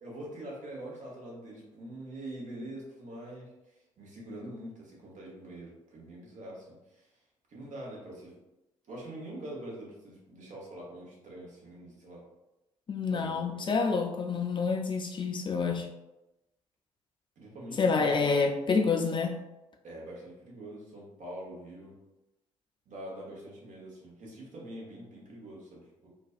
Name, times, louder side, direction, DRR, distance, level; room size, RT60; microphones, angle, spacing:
voice 1, 0.0-7.1 7.5-8.4 8.9-12.2 13.1-13.9 17.4-18.3 19.8-22.0 22.9-26.1, right 1 dB, 50° right, -3 dB, 1.0 m, -44 dB
voice 2, 12.9-15.9 17.8-19.4, left 4 dB, 30° left, 3 dB, 0.4 m, -28 dB
2.5 x 2.3 x 2.4 m, 0.96 s
figure-of-eight pair, 40°, 16 cm